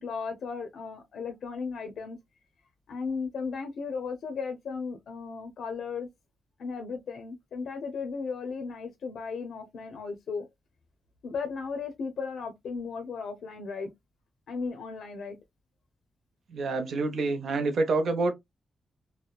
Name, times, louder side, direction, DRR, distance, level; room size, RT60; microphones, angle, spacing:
voice 1, 0.0-2.2 2.9-6.1 6.6-10.4 11.2-13.9 14.5-15.4, left 5 dB, 70° left, 0.5 m, -35 dB
voice 2, 16.5-18.3, right 3 dB, 60° right, 0.6 m, -27 dB
2.8 x 2.1 x 2.2 m
wide cardioid pair, 155°, 0 cm